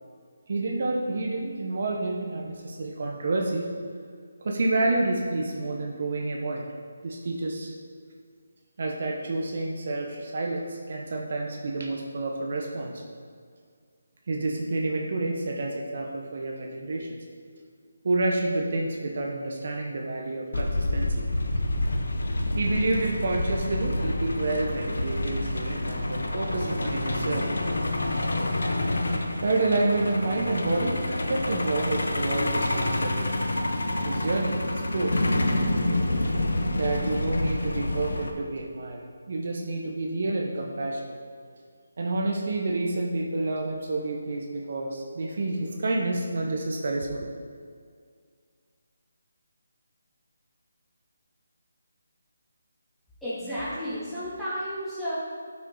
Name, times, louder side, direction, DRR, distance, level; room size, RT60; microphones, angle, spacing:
voice 1, 0.5-3.7 4.4-6.6 7.0-7.7 8.8-13.0 14.3-17.2 18.0-21.2 22.5-27.5 29.4-33.3 34.0-35.2 36.7-41.2 42.0-47.3, right 2 dB, 55° right, 0 dB, 1.1 m, -29 dB
Truck, 20.5-38.3, left 1 dB, 75° left, 1.1 m, -28 dB
voice 2, 53.2-55.1, equal, ahead, -14 dB, 2.7 m, -32 dB
12.5 x 6.1 x 3.9 m, 2.1 s
figure-of-eight pair, 155°, 0 cm